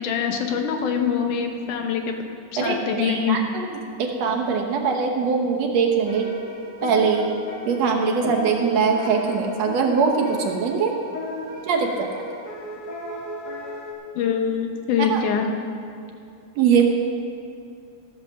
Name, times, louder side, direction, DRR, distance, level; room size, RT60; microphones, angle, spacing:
voice 1, 0.0-2.2 2.5-3.4 8.2-8.3 14.2-15.5, left 7 dB, 90° left, 4 dB, 2.6 m, -24 dB
voice 2, 2.6-3.7 4.0-6.3 6.8-7.2 7.7-10.9 11.7-11.9 15.1-15.2 16.6-16.8, right 5 dB, 65° right, 2 dB, 2.0 m, -22 dB
sound 1, 6.0-13.9, left 1 dB, 35° left, 2.3 m, -35 dB
14.5 x 7.9 x 6.4 m, 2.5 s
omnidirectional pair, 3.5 m